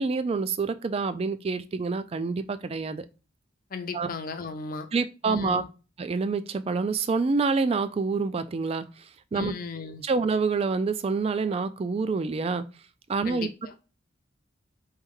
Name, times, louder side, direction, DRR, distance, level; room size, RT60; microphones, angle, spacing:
voice 1, 0.0-3.1 3.9-4.1 4.9-5.6 6.0-9.0 9.3-9.5 10.0-12.6 13.1-13.5, right 4 dB, 30° right, 0.3 m, -27 dB
voice 2, 3.7-4.9 5.2-5.7 9.3-10.0 13.2-13.7, left 4 dB, 45° left, 0.5 m, -36 dB
4.3 x 3.1 x 3.7 m
head